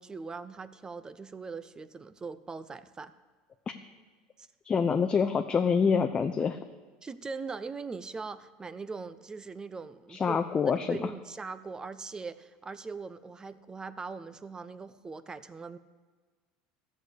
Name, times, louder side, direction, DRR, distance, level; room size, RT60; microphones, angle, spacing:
voice 1, 0.0-3.1 4.4-4.5 7.0-15.8, right 4 dB, 20° right, 15 dB, 0.7 m, -41 dB
voice 2, 4.6-6.6 10.1-11.0, left 6 dB, 25° left, 7 dB, 0.7 m, -26 dB
14.0 x 6.5 x 8.2 m, 1.4 s
supercardioid pair, 105°, 4 cm